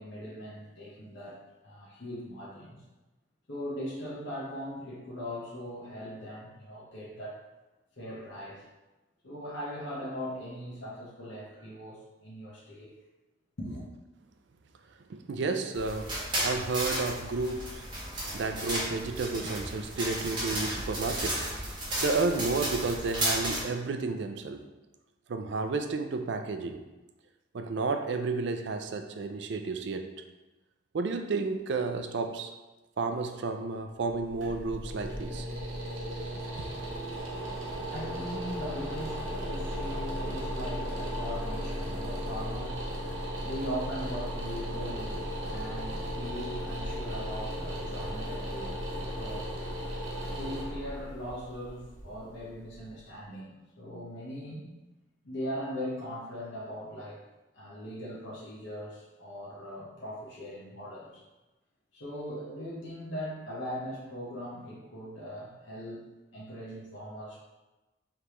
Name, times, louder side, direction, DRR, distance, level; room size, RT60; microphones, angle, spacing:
voice 1, 0.0-2.8 3.5-7.4 8.0-8.6 9.2-12.9 13.6-13.9 37.0-49.5 50.2-53.5 53.8-54.7 55.2-57.2 57.5-61.2 61.9-66.1 66.3-67.4, equal, 65° left, -7 dB, 1.0 m, -40 dB
voice 2, 15.1-17.9 18.2-21.7 22.0-24.7 25.3-26.8 27.5-30.1 30.9-32.5 33.0-35.5 36.6-36.7, right 3 dB, 60° right, 7 dB, 0.4 m, -32 dB
sound 1, 15.7-23.6, right 1 dB, 25° right, 1.3 m, -33 dB
sound 2, 34.0-53.0, equal, 80° right, 1.0 m, -36 dB
5.0 x 3.3 x 3.0 m, 1.1 s
head